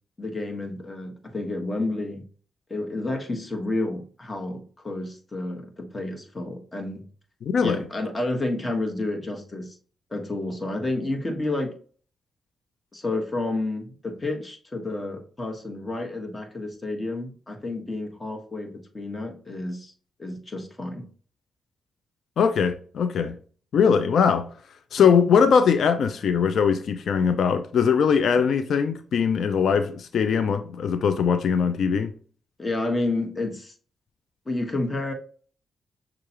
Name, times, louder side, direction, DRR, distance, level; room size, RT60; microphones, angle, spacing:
voice 1, 0.2-2.3 2.7-7.1 7.6-9.8 10.1-11.8 12.9-19.9 20.2-21.1 32.6-33.7 34.4-35.1, left 2 dB, 30° left, 1.4 m, -30 dB
voice 2, 7.4-7.8 22.4-23.4 23.7-24.5 24.9-32.1, left 6 dB, 70° left, 0.4 m, -21 dB
6.5 x 2.4 x 2.9 m
supercardioid pair, 50°, 0 cm